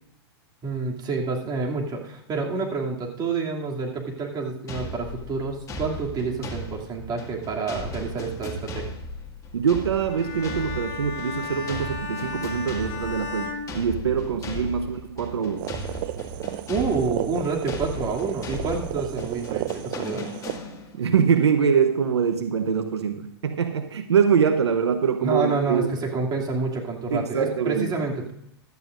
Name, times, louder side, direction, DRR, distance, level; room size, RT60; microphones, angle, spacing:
voice 1, 0.6-8.9 16.7-20.2 25.2-28.3, right 4 dB, 30° right, -1 dB, 2.7 m, -28 dB
sound 1, 4.7-21.1, left 1 dB, 25° left, 2.0 m, -37 dB
voice 2, 9.5-15.7 21.0-25.9 27.1-27.9, right 7 dB, 90° right, 8 dB, 0.9 m, -24 dB
Bowed string instrument, 10.0-14.5, left 4 dB, 40° left, 4.2 m, -35 dB
sound 2, 15.6-20.6, right 17 dB, 50° right, 0.5 m, -33 dB
15.5 x 12.0 x 2.6 m, 0.78 s
hypercardioid pair, 115°, 14 cm